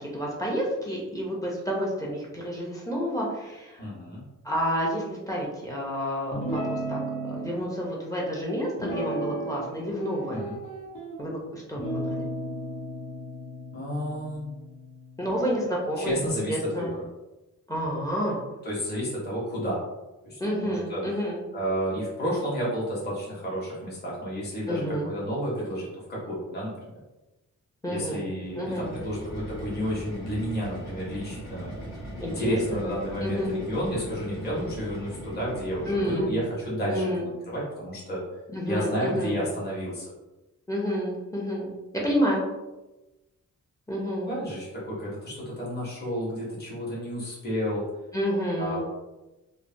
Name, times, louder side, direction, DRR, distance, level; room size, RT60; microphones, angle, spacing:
voice 1, 0.0-3.8 4.4-10.5 11.2-12.3 15.2-16.2 16.5-16.9 17.7-18.4 20.4-21.5 24.7-25.1 27.8-28.3 28.6-28.9 32.2-32.9 33.2-33.6 35.9-36.3 36.9-37.3 38.5-39.4 40.7-42.4 43.9-44.4 48.1-48.8, equal, 10° left, -3 dB, 0.4 m, -29 dB
voice 2, 3.8-4.2 10.3-10.5 13.7-14.5 16.0-17.1 18.6-19.8 20.2-21.0 21.5-26.7 27.9-31.7 32.2-38.2 38.7-40.1 44.3-47.8 48.6-48.8, equal, 30° left, -6 dB, 0.9 m, -31 dB
Guitar, 6.3-7.5 8.8-9.7 10.0-11.2 11.8-15.2, right 1 dB, 85° left, 1.0 m, -34 dB
sound 1, 28.5-36.5, equal, 60° left, 1.1 m, -39 dB
3.1 x 2.1 x 2.5 m, 1.0 s
wide cardioid pair, 180°, 31 cm